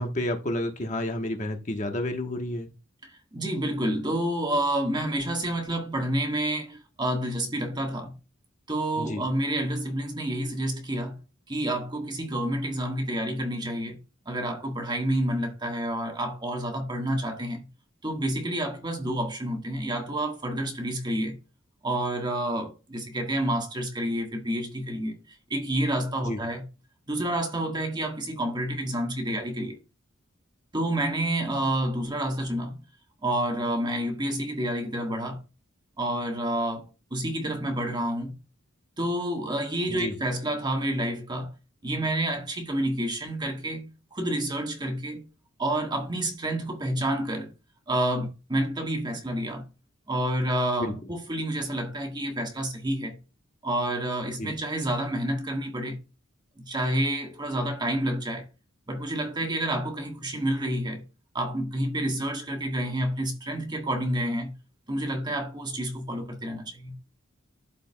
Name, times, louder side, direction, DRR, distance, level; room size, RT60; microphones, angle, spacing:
voice 1, 0.0-2.7 9.0-9.2 26.2-26.4 39.9-40.1 50.8-50.9 54.4-54.5, left 1 dB, 35° left, 1.1 m, -30 dB
voice 2, 3.0-8.1 8.7-11.2 11.5-14.0 14.2-17.7 18.0-21.4 21.8-25.2 25.5-26.6 27.1-29.8 30.7-32.8 33.2-35.4 36.0-38.4 39.0-41.5 41.8-45.3 45.6-47.5 47.9-49.6 50.1-53.2 53.6-56.0 56.6-58.5 58.9-61.0 61.3-64.5 64.9-67.0, right 1 dB, 20° right, 1.5 m, -29 dB
12.5 x 4.6 x 2.2 m
head